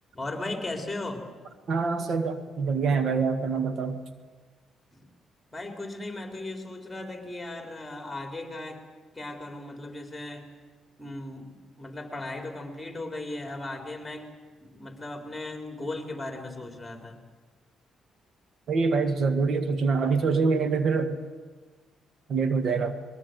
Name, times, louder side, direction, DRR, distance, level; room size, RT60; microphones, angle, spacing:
voice 1, 0.1-1.3 4.9-5.1 5.5-8.8 9.1-10.5 11.0-14.3 14.6-17.2, left 2 dB, 10° left, 4 dB, 3.9 m, -37 dB
voice 2, 1.7-4.0 18.7-21.2 22.3-23.0, right 4 dB, 60° right, 9 dB, 1.6 m, -25 dB
21.5 x 21.0 x 7.9 m, 1.4 s
cardioid pair, 90°, 0 cm